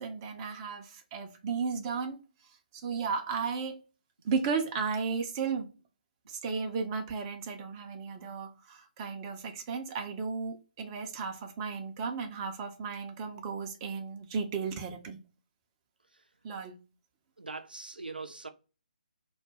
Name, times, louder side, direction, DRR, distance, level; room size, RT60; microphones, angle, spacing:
voice 1, 0.0-2.2 2.7-3.8 4.2-5.7 6.3-15.2 16.4-16.8, right 5 dB, 25° right, 0.5 m, -34 dB
voice 2, 17.4-18.5, right 3 dB, 80° right, 0.5 m, -42 dB
2.2 x 2.1 x 3.3 m
figure-of-eight pair, 140°, 5 cm